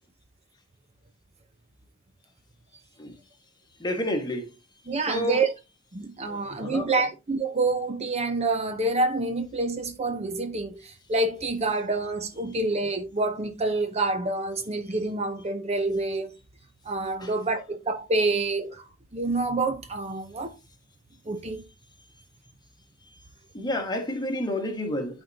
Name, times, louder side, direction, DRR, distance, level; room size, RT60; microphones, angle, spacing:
voice 1, 3.8-4.5 5.1-5.4 6.3-7.0 14.9-15.0 17.2-17.3 23.0-23.2 23.5-25.2, left 1 dB, 20° left, 1.4 m, -30 dB
voice 2, 4.9-5.5 5.9-16.4 16.8-18.8 19.1-20.6 21.3-21.6, right 2 dB, 35° right, 0.7 m, -27 dB
11.5 x 4.4 x 2.7 m
head